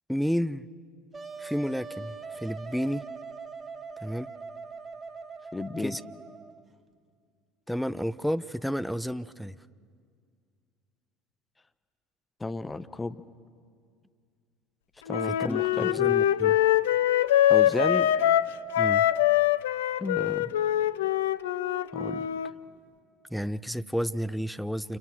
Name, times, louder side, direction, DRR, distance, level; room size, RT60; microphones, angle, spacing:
voice 1, 0.1-0.7 1.4-3.0 4.0-4.3 5.8-6.0 7.7-9.6 15.4-16.6 18.8-19.0 23.3-25.0, equal, ahead, 16 dB, 0.7 m, -31 dB
Wind instrument woodwind instrument, 1.1-6.6, right 4 dB, 25° right, 1.6 m, -42 dB
voice 2, 5.5-6.0 12.4-13.2 15.0-16.1 17.5-18.1 20.0-20.5 21.9-22.3, left 3 dB, 15° left, 11 dB, 1.2 m, -33 dB
Wind instrument woodwind instrument 2, 15.1-22.5, left 12 dB, 70° left, 0.6 m, -24 dB
29.0 x 28.0 x 6.4 m, 2.1 s
figure-of-eight pair, 65°, 0 cm